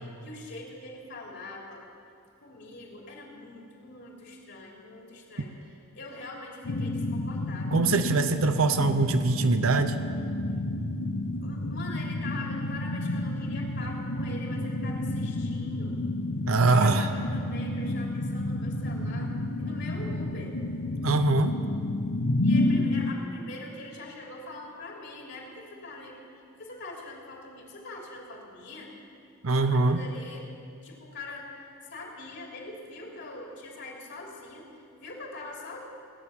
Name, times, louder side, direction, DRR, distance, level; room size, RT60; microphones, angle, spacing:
voice 1, 0.0-1.9 2.4-5.5 5.9-7.8 11.4-16.0 16.7-20.6 22.4-26.2 26.5-28.9 29.5-30.5 30.8-31.5 31.8-35.8, left 2 dB, 55° left, -1 dB, 3.1 m, -43 dB
sound 1, 6.6-23.1, left 1 dB, 80° left, 0.9 m, -30 dB
voice 2, 7.7-10.0 16.5-17.1 21.0-21.6 29.4-30.0, right 3 dB, 70° right, 9 dB, 0.7 m, -23 dB
18.0 x 10.0 x 7.2 m, 2.4 s
head